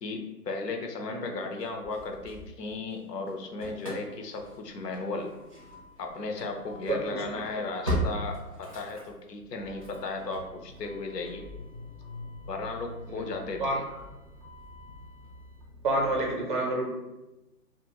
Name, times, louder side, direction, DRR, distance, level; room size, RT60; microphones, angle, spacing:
voice 1, 0.0-5.3 6.0-11.5 12.5-13.8, left 3 dB, 80° left, 4 dB, 0.7 m, -35 dB
Engine starting / Slam, 1.6-3.0 3.3-16.3, equal, 25° left, 0.4 m, -40 dB
voice 2, 6.9-7.6 13.1-13.3 13.6-14.0 15.8-16.9, right 2 dB, 35° right, -1 dB, 0.5 m, -29 dB
2.4 x 2.2 x 2.9 m, 1.0 s
hypercardioid pair, 155°, 48 cm